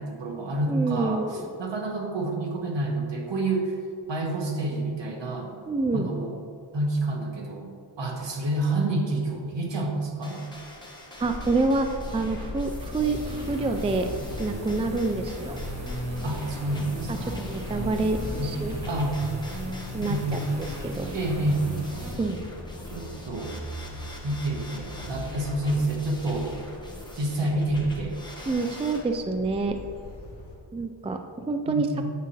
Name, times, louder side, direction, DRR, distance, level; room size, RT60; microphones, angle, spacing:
voice 1, 0.0-3.8 4.1-5.5 5.9-6.4 6.7-7.7 8.0-10.4 16.2-17.3 18.3-18.5 18.9-19.2 20.0-20.4 21.1-21.7 22.9-23.5 24.2-26.5 27.1-28.2 31.7-32.1, right 2 dB, 60° right, 1 dB, 1.5 m, -28 dB
voice 2, 0.7-1.5 5.6-6.1 11.2-11.9 12.1-14.1 14.4-15.6 17.2-18.8 19.9-20.4 20.8-21.1 22.2-22.4 28.5-29.8 30.7-31.2 31.5-31.9, right 3 dB, 15° right, 6 dB, 0.3 m, -27 dB
sound 1, 10.2-29.0, left 1 dB, 10° left, 1.3 m, -44 dB
sound 2, 11.2-30.6, left 2 dB, 30° left, 2.0 m, -39 dB
sound 3, 12.8-22.1, right 1 dB, 35° right, 1.6 m, -37 dB
9.2 x 7.4 x 3.2 m, 2.3 s
wide cardioid pair, 110°, 48 cm